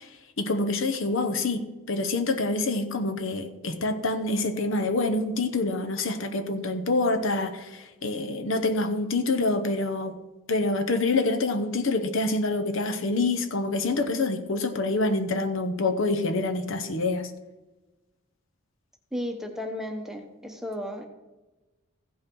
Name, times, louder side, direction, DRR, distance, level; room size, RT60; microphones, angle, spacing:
voice 1, 0.0-10.2 10.5-17.3, left 2 dB, 65° left, 8 dB, 0.8 m, -26 dB
voice 2, 19.1-21.0, left 1 dB, ahead, 3 dB, 0.9 m, -34 dB
15.5 x 5.6 x 4.6 m, 1.1 s
head